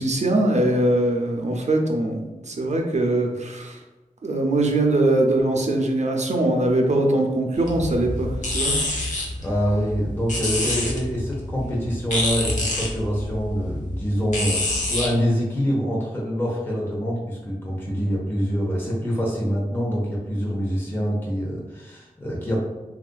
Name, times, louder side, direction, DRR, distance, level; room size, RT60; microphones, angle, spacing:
voice 1, 0.0-2.2 2.5-3.8 4.2-8.8, right 1 dB, 55° right, 2 dB, 0.6 m, -22 dB
sound 1, 7.5-15.1, left 1 dB, 60° left, 0.8 m, -27 dB
voice 2, 9.4-22.6, equal, 15° left, -4 dB, 0.7 m, -25 dB
3.5 x 2.4 x 2.2 m, 1.1 s
wide cardioid pair, 55°, 14 cm